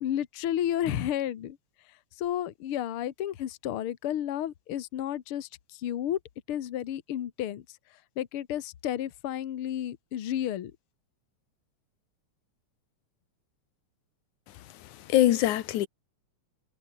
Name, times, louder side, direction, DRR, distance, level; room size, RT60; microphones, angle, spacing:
voice 1, 0.0-1.6 2.2-6.2 6.5-7.6 8.2-10.7, left 11 dB, 55° left, 1.9 m, -32 dB
voice 2, 14.5-15.9, left 13 dB, 85° left, 2.6 m, -25 dB
omnidirectional pair, 3.4 m